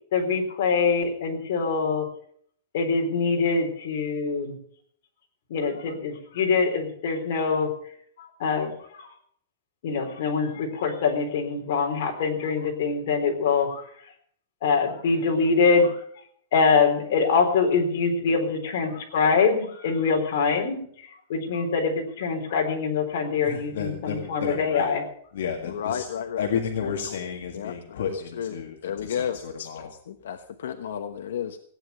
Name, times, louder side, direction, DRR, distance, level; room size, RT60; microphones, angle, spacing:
voice 1, 0.1-2.1 2.7-4.6 5.5-7.7 8.2-9.1 9.8-13.8 14.6-15.9 16.5-20.8 21.3-25.0, left 5 dB, 50° left, 1 dB, 3.9 m, -24 dB
voice 2, 23.4-25.0 25.3-26.1 26.4-29.9, left 7 dB, 65° left, 2 dB, 2.0 m, -32 dB
voice 3, 25.7-26.5 26.8-27.2 27.5-28.1 28.4-28.5 28.8-31.6, left 8 dB, 85° left, 7 dB, 1.0 m, -32 dB
17.0 x 9.6 x 6.9 m, 0.63 s
supercardioid pair, 180°, 0 cm